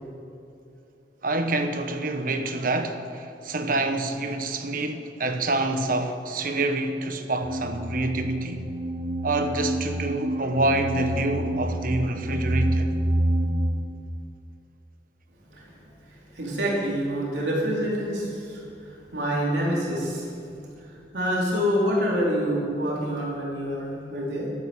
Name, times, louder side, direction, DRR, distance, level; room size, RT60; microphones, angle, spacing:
voice 1, 1.2-8.6 9.2-12.9, right 2 dB, 55° right, 1.2 m, -27 dB
sound 1, 7.4-13.7, right 1 dB, 30° right, 0.9 m, -27 dB
voice 2, 16.3-18.6 19.1-20.3 21.1-24.5, equal, 75° right, 4.1 m, -26 dB
13.0 x 12.0 x 7.3 m
head